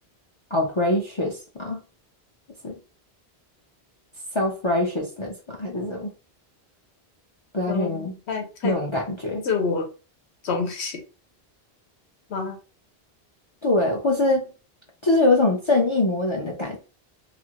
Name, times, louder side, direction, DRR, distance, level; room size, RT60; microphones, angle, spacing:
voice 1, 0.5-1.8 2.6-2.8 4.3-6.1 7.5-8.1 8.6-9.4 13.6-14.5 15.0-16.8, left 2 dB, 40° left, 0.5 m, -23 dB
voice 2, 7.7-8.8 9.4-9.9 10.4-11.0 12.3-12.6, left 5 dB, 85° left, 1.1 m, -27 dB
2.6 x 2.5 x 2.8 m
omnidirectional pair, 1.1 m